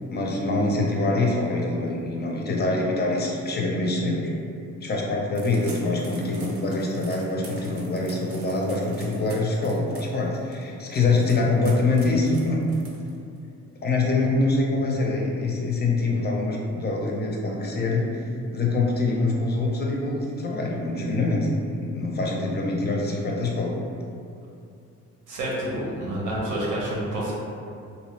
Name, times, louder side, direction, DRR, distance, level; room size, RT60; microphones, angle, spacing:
voice 1, 0.1-4.3 4.8-12.6 13.8-18.2 18.5-23.7, left 2 dB, 35° left, -1 dB, 0.4 m, -24 dB
sound 1, 5.3-13.4, right 3 dB, 50° right, 0.6 m, -46 dB
voice 2, 25.3-27.3, right 1 dB, 80° right, -5 dB, 0.8 m, -28 dB
2.6 x 2.0 x 3.1 m, 2.5 s
cardioid pair, 90°, 30 cm